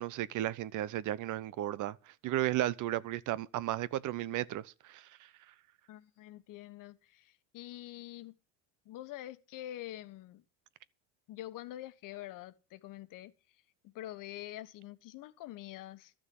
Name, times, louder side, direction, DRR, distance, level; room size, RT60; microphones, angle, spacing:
voice 1, 0.0-2.0 2.2-5.1, right 14 dB, 55° right, 0.8 m, -34 dB
voice 2, 5.9-8.3 8.8-10.4 11.3-13.3 13.8-16.1, left 14 dB, 60° left, 1.3 m, -46 dB
13.0 x 6.4 x 9.5 m
cardioid pair, 120°, 37 cm